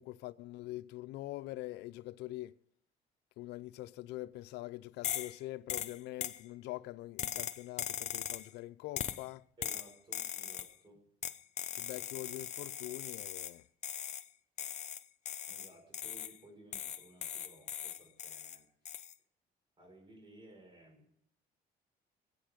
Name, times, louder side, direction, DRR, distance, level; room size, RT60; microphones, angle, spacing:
voice 1, 0.0-2.5 3.4-9.4 11.7-13.6, left 17 dB, 85° left, 0.5 m, -44 dB
sound 1, 5.0-5.4 5.7-6.4 7.2-8.5 9.0-9.3 9.6-10.7 11.2-13.6 13.8-14.3 14.6-16.4 16.7-18.6 18.9-19.1, left 9 dB, 45° left, 0.7 m, -40 dB
voice 2, 9.6-11.0 15.5-18.7 19.8-21.1, right 1 dB, 30° right, 5.1 m, -58 dB
20.5 x 8.3 x 5.0 m
cardioid pair, 110°, 17 cm